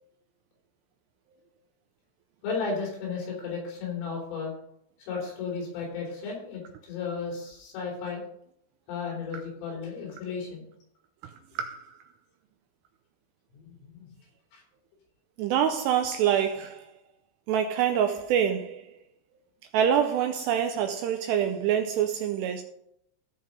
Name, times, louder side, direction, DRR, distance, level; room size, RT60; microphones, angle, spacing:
voice 1, 2.4-4.5 5.0-8.2 8.9-10.7 13.5-14.0 14.5-14.6, left 5 dB, 90° left, 6.3 m, -34 dB
voice 2, 11.6-12.0 15.4-16.9 17.5-18.9 19.7-22.6, right 9 dB, 90° right, 2.5 m, -26 dB
15.0 x 5.2 x 5.4 m
omnidirectional pair, 5.5 m